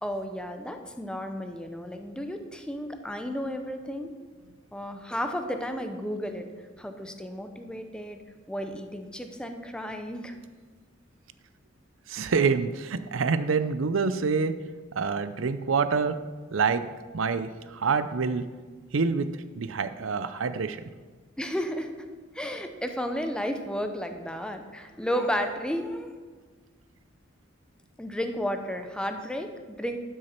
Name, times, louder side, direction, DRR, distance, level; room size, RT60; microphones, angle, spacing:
voice 1, 0.0-4.1 4.7-6.5 6.8-8.2 8.5-10.4 21.4-21.9 22.3-26.2 28.0-30.0, equal, 5° left, 6 dB, 0.7 m, -33 dB
voice 2, 12.1-14.6 14.9-16.2 16.5-16.8 17.1-18.4 18.9-19.3 19.6-20.8, right 5 dB, 75° right, 12 dB, 0.6 m, -26 dB
12.0 x 6.4 x 4.4 m, 1.4 s
head